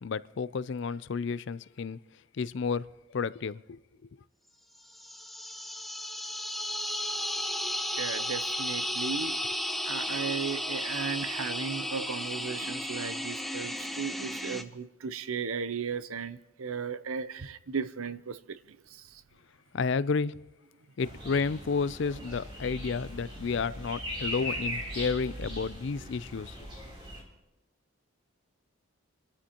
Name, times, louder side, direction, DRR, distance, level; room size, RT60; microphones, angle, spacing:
voice 1, 0.0-2.0 2.4-2.8 3.1-3.8 19.7-20.4 21.0-26.5, left 5 dB, 55° left, 0.4 m, -31 dB
sound 1, 4.9-14.6, left 1 dB, ahead, 0.6 m, -34 dB
voice 2, 8.0-9.3 9.8-19.2, right 6 dB, 80° right, 0.7 m, -36 dB
sound 2, 21.0-27.2, equal, 25° right, 3.4 m, -39 dB
28.0 x 13.0 x 3.0 m
head